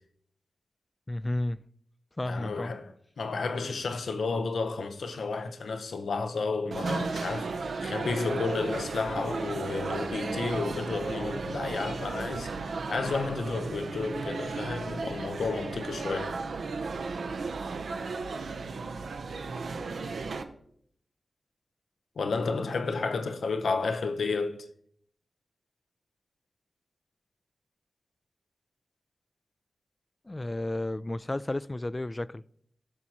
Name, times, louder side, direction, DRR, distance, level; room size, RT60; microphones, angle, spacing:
voice 1, 1.1-1.6 2.2-2.7 30.3-32.4, left 1 dB, 30° left, 0.3 m, -32 dB
voice 2, 2.2-16.4 22.2-24.7, left 4 dB, 80° left, 0.7 m, -32 dB
sound 1, 6.7-20.4, right 4 dB, 85° right, 0.6 m, -34 dB
17.0 x 6.1 x 2.9 m
cardioid pair, 45°, 0 cm